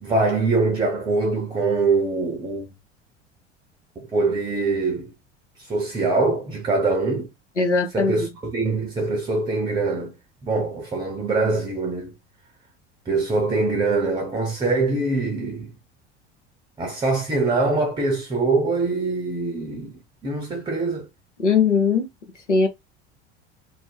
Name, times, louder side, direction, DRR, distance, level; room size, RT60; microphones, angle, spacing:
voice 1, 0.0-2.7 4.0-5.1 5.6-7.3 7.9-10.1 10.4-12.1 13.1-15.7 16.8-21.1, right 3 dB, 15° right, 0.6 m, -23 dB
voice 2, 7.6-8.3 21.4-22.1 22.5-22.7, left 5 dB, 85° left, 0.8 m, -20 dB
2.6 x 2.1 x 3.4 m
figure-of-eight pair, 70°, 35 cm